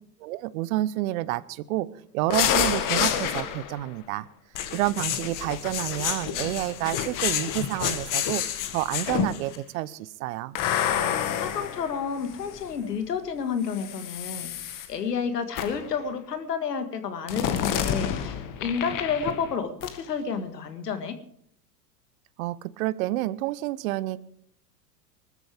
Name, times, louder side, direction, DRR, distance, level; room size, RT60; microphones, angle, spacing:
voice 1, 0.2-1.9 2.1-4.3 4.7-8.4 8.7-10.6 22.4-24.2, right 16 dB, 60° right, 19 dB, 0.8 m, -29 dB
sound 1, 2.3-3.8 4.5-9.6 10.6-12.7 13.7-14.9 15.6-15.9 17.3-19.6 19.8-20.0, left 9 dB, 40° left, 1.8 m, -29 dB
voice 2, 11.4-21.2, left 6 dB, 85° left, 8 dB, 1.9 m, -30 dB
20.5 x 13.0 x 3.5 m, 0.65 s
hypercardioid pair, 95°, 47 cm